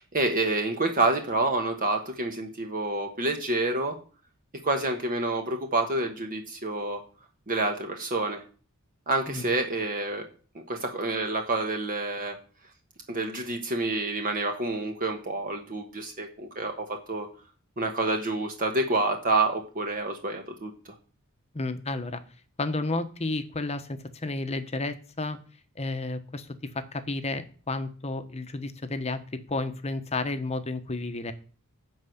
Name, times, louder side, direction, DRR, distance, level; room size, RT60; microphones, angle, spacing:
voice 1, 0.0-3.9 4.6-7.0 7.5-8.4 9.1-10.2 10.5-12.4 13.1-17.3 17.8-20.7, right 2 dB, 40° right, 4 dB, 1.2 m, -28 dB
voice 2, 21.5-22.2 22.6-25.4 25.8-26.5 26.7-29.2 29.5-31.3, left 2 dB, 30° left, 9 dB, 1.0 m, -31 dB
11.5 x 4.7 x 7.9 m, 0.40 s
head